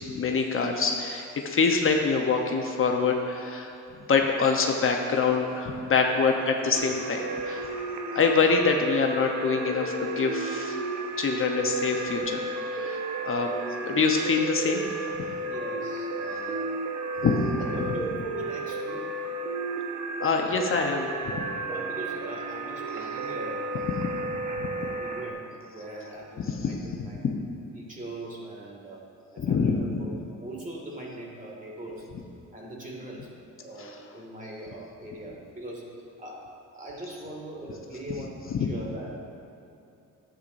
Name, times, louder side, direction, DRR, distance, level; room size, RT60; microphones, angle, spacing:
voice 1, 0.0-3.7 4.1-7.7 8.1-10.8 11.2-13.5 13.8-14.9 17.2-17.5 20.2-21.1 24.6-24.7 26.5-26.7 27.0-27.3 29.4-29.9 33.8-33.9 38.6-38.7, left 5 dB, 45° left, 2 dB, 0.9 m, -25 dB
sound 1, 6.7-25.3, right 2 dB, 75° right, 0.9 m, -33 dB
voice 2, 15.4-16.7 17.6-19.1 21.7-23.7 24.7-27.2 27.8-29.0 29.3-30.1 30.4-32.1 32.5-33.3 33.6-36.5 36.8-39.2, right 1 dB, 25° right, -2 dB, 2.1 m, -41 dB
11.5 x 8.4 x 2.6 m, 2.8 s
cardioid pair, 90°, 30 cm